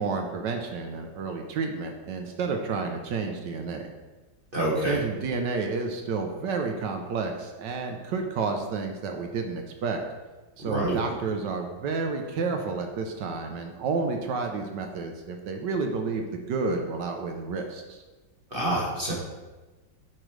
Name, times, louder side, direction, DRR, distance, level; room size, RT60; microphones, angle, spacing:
voice 1, 0.0-3.9 4.8-10.0 10.6-18.0, right 4 dB, 70° right, 4 dB, 1.2 m, -30 dB
voice 2, 4.5-5.0 10.6-11.0 18.5-19.1, right 1 dB, 35° right, -5 dB, 1.2 m, -27 dB
8.9 x 5.0 x 3.2 m, 1.2 s
omnidirectional pair, 2.1 m